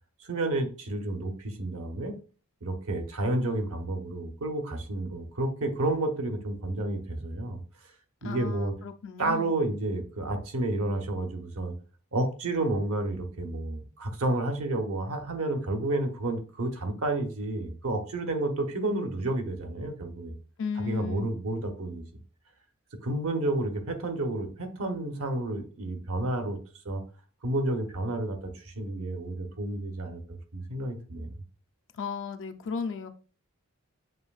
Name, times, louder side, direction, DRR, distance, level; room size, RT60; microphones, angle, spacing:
voice 1, 0.3-2.2 2.6-7.6 8.2-8.7 9.2-11.7 12.1-20.3 20.8-22.0 23.0-26.6 26.8-27.0 27.4-31.3, right 2 dB, 70° right, 5 dB, 0.9 m, -30 dB
voice 2, 8.2-9.5 20.6-21.3 31.9-33.1, left 5 dB, 60° left, 6 dB, 0.5 m, -35 dB
7.5 x 2.6 x 2.4 m, 0.38 s
head